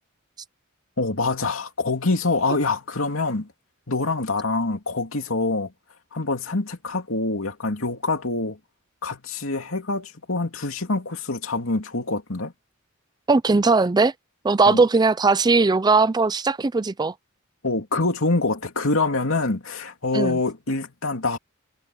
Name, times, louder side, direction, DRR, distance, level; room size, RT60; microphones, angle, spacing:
voice 1, 1.0-3.5 3.9-5.7 6.1-8.6 9.0-12.5 14.7-14.8 17.6-21.4, left 3 dB, 70° left, 2.7 m, -25 dB
voice 2, 13.3-14.1 14.4-17.1 20.1-20.4, right 3 dB, 20° right, 0.4 m, -19 dB
head